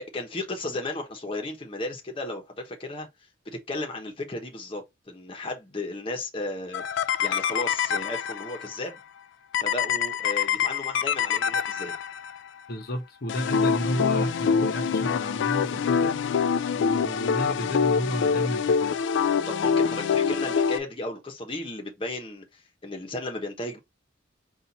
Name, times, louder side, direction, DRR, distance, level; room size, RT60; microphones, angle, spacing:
voice 1, 0.1-3.1 3.5-9.0 9.6-11.9 19.5-23.8, left 2 dB, 30° left, 0.9 m, -34 dB
sound 1, 6.7-8.7 9.5-12.4 13.3-20.8, left 6 dB, 70° left, 0.3 m, -25 dB
voice 2, 12.7-16.2 16.7-19.0, equal, 55° left, 0.8 m, -32 dB
4.3 x 2.5 x 4.0 m
head